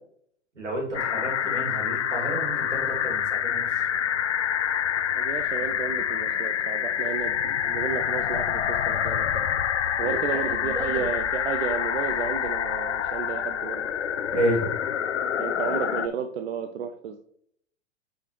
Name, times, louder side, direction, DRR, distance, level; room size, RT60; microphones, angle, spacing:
voice 1, 0.5-3.8 10.0-11.0 14.3-14.7, right 1 dB, 85° right, -2 dB, 2.7 m, -31 dB
sound 1, 0.9-16.1, left 9 dB, 75° left, 0.7 m, -27 dB
voice 2, 5.1-9.5 10.0-13.9 15.4-17.2, right 7 dB, 65° right, 7 dB, 0.7 m, -32 dB
9.3 x 4.3 x 3.2 m, 0.66 s
figure-of-eight pair, 100°, 35 cm